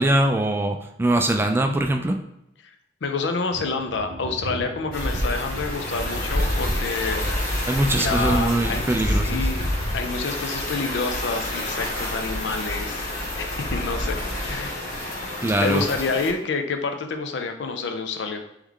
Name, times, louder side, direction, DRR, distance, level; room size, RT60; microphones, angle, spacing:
voice 1, 0.0-2.2 7.7-9.5 15.4-15.9, right 1 dB, 15° right, 5 dB, 0.3 m, -22 dB
voice 2, 3.0-7.2 8.0-9.6 9.9-13.1 13.4-18.4, left 4 dB, 85° left, 6 dB, 0.5 m, -28 dB
Thunder, 3.5-10.0 10.3-10.9 11.3-12.2, right 2 dB, 85° right, 0.5 m, -40 dB
sound 1, 4.9-16.3, left 1 dB, 55° left, 1.2 m, -28 dB
3.5 x 3.1 x 3.6 m, 0.83 s
head